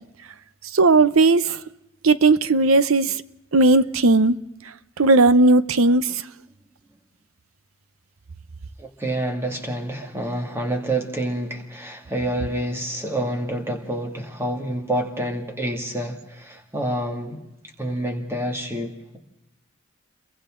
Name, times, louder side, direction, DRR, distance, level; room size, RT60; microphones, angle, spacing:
voice 1, 0.7-1.6 2.0-3.2 3.5-4.4 5.0-6.2, right 3 dB, 85° right, 0.8 m, -16 dB
voice 2, 8.8-17.4 17.8-19.2, right 1 dB, 10° right, 2.4 m, -28 dB
30.0 x 23.0 x 3.9 m
head